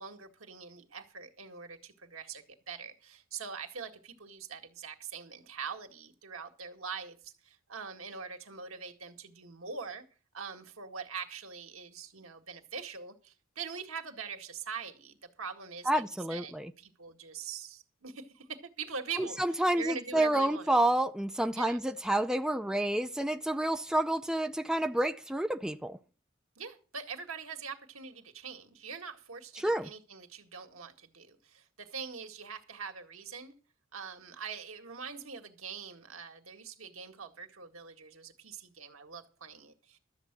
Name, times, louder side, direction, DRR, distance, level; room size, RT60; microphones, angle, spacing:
voice 1, 0.0-10.0 10.3-16.0 16.3-20.7 21.6-21.8 26.6-33.5 33.9-40.0, right 6 dB, 85° right, 1.9 m, -43 dB
voice 2, 15.9-16.7 19.2-26.0 29.6-29.9, right 1 dB, 5° right, 0.5 m, -29 dB
13.0 x 7.8 x 6.1 m
head